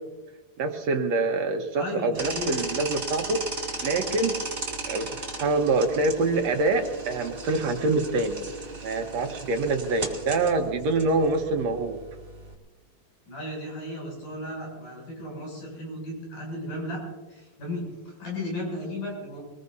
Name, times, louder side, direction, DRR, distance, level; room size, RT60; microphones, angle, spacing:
voice 1, 0.6-3.4 3.8-4.3 4.9-8.4 8.8-12.0, right 3 dB, 60° right, 4 dB, 2.1 m, -25 dB
voice 2, 1.7-2.6 13.3-17.0 17.3-19.4, left 1 dB, 70° left, -2 dB, 8.5 m, -35 dB
sound 1, 2.1-12.5, right 2 dB, 20° right, 1.9 m, -36 dB
23.5 x 20.0 x 2.7 m, 1.2 s
omnidirectional pair, 3.8 m